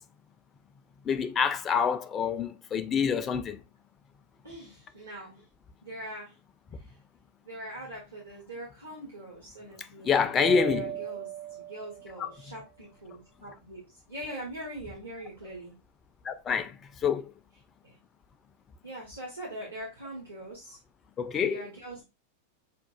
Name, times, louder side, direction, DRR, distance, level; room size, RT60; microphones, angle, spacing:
voice 1, 1.1-3.6 10.0-10.9 12.2-12.3 16.2-16.7 17.0-17.3 21.2-21.6, left 6 dB, 25° left, 0.4 m, -27 dB
voice 2, 4.4-5.4 5.8-6.4 6.7-7.0 7.4-10.3 10.6-13.8 14.1-15.7 17.8-18.0 18.8-20.8 21.3-22.0, right 1 dB, 80° right, 1.0 m, -42 dB
Mallet percussion, 10.4-12.4, right 13 dB, 50° right, 0.6 m, -37 dB
5.7 x 2.4 x 2.3 m
figure-of-eight pair, 90°, 0 cm